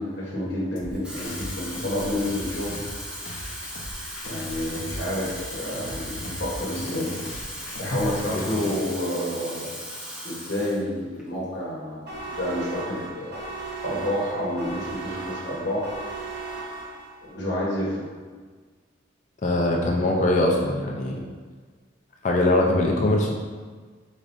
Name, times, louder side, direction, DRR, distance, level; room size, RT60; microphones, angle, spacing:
voice 1, 0.0-2.8 4.2-7.1 7.8-9.7 10.2-13.4 13.8-15.9 17.3-18.1, left 1 dB, 60° left, -6 dB, 1.1 m, -29 dB
sound 1, 0.8-8.7, left 2 dB, 85° left, 0.6 m, -38 dB
Water tap faucet / Fill (with liquid), 0.9-10.8 11.2-11.4, equal, 5° right, 0.8 m, -37 dB
sound 2, 12.1-17.3, right 3 dB, 55° right, 1.0 m, -36 dB
voice 2, 19.4-21.2 22.2-23.3, left 1 dB, 40° left, -1 dB, 0.5 m, -22 dB
4.8 x 4.1 x 2.6 m, 1.5 s
head